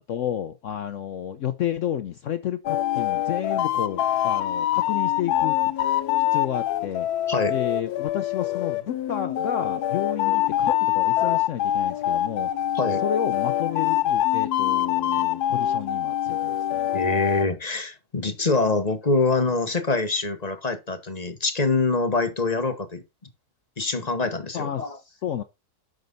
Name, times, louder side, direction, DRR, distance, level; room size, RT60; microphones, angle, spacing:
voice 1, 0.0-7.1 7.5-12.7 13.0-16.9 24.5-25.4, left 9 dB, 60° left, 0.9 m, -31 dB
sound 1, 2.7-17.5, left 12 dB, 80° left, 1.2 m, -24 dB
voice 2, 16.9-23.0 23.8-25.0, left 3 dB, 25° left, 1.3 m, -25 dB
9.2 x 6.6 x 4.0 m
omnidirectional pair, 1.7 m